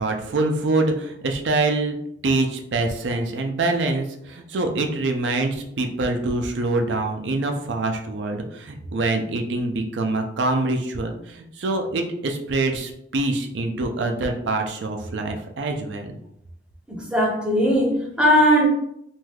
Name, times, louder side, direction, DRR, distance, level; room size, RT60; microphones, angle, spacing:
voice 1, 0.0-2.0 2.2-16.1, right 2 dB, 80° right, 0.5 m, -25 dB
voice 2, 16.9-18.7, equal, 5° right, 0.6 m, -19 dB
2.5 x 2.3 x 3.3 m
head